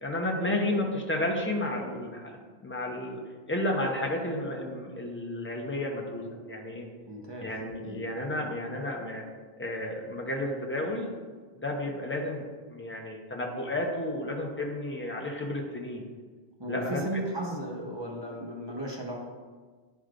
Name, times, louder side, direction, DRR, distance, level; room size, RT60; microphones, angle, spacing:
voice 1, 0.0-2.4 2.6-3.2 3.5-6.9 7.4-9.3 9.6-11.1 11.6-16.0 16.7-17.2, left 1 dB, 15° left, 0 dB, 0.8 m, -32 dB
voice 2, 7.1-7.5 7.8-8.0 16.6-19.2, right 1 dB, 25° right, -2 dB, 1.0 m, -35 dB
9.9 x 4.6 x 2.5 m, 1.4 s
omnidirectional pair, 1.1 m